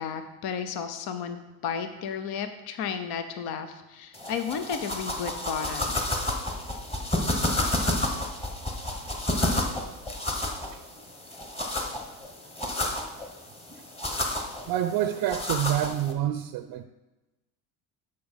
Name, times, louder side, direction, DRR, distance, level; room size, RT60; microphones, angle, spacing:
voice 1, 0.0-6.0, left 7 dB, 55° left, 8 dB, 0.8 m, -33 dB
sound 1, 4.1-16.1, left 1 dB, 15° left, 1.2 m, -31 dB
voice 2, 14.7-16.8, right 12 dB, 55° right, 10 dB, 0.6 m, -27 dB
6.9 x 6.6 x 5.2 m, 1.0 s
supercardioid pair, 105°, 43 cm